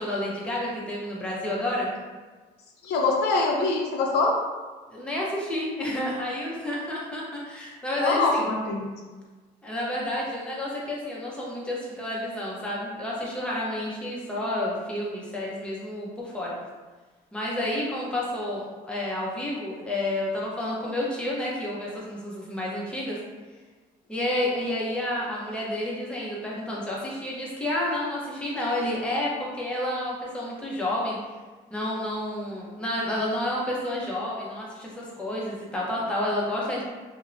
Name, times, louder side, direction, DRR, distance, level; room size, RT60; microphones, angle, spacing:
voice 1, 0.0-1.9 4.9-8.5 9.6-16.6 17.3-23.2 24.1-31.2 31.7-36.8, left 1 dB, 5° left, -5 dB, 0.6 m, -30 dB
voice 2, 2.8-4.4 8.0-8.9, left 3 dB, 75° left, -1 dB, 0.5 m, -24 dB
2.7 x 2.0 x 2.5 m, 1.3 s
cardioid pair, 110°, 17 cm